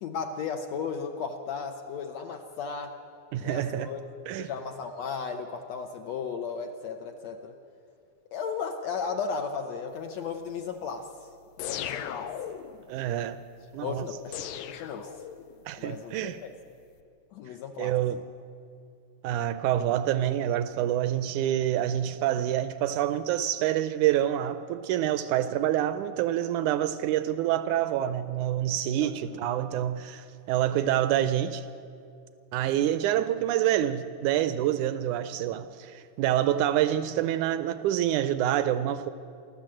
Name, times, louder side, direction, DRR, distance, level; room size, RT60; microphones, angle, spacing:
voice 1, 0.0-3.0 3.4-4.0 4.4-7.5 8.3-11.1 11.6-12.3 13.8-15.1 15.8-16.5 17.3-17.9 29.0-29.4, left 5 dB, 70° left, 1.8 m, -35 dB
voice 2, 3.3-3.9 4.3-4.5 12.9-13.4 13.7-14.0 15.7-16.4 17.8-18.2 19.2-31.6 32.5-39.1, right 12 dB, 80° right, 1.8 m, -27 dB
sound 1, 11.6-12.8 14.3-15.6, left 10 dB, 85° left, 2.5 m, -37 dB
27.5 x 12.5 x 7.7 m
omnidirectional pair, 3.9 m